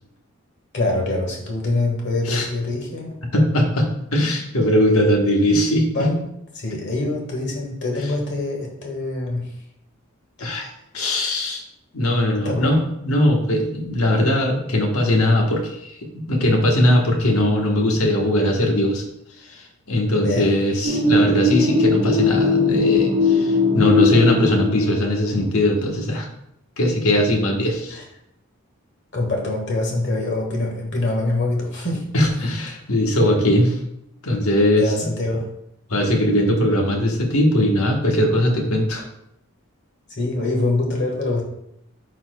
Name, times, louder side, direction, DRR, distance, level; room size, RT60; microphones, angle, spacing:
voice 1, 0.7-3.2 5.9-6.2 6.5-9.5 12.4-12.8 20.2-20.5 27.9-28.0 29.1-32.1 34.8-35.5 40.1-41.4, left 2 dB, 55° left, 0 dB, 1.6 m, -24 dB
voice 2, 3.3-5.9 10.4-10.7 10.9-11.6 11.9-19.1 19.5-26.3 26.8-28.0 32.1-33.8 34.2-35.1 35.9-39.0, left 1 dB, 80° left, 1 dB, 1.3 m, -20 dB
sound 1, 20.8-25.3, left 3 dB, 35° right, 1.2 m, -19 dB
11.5 x 4.2 x 2.3 m, 0.78 s
head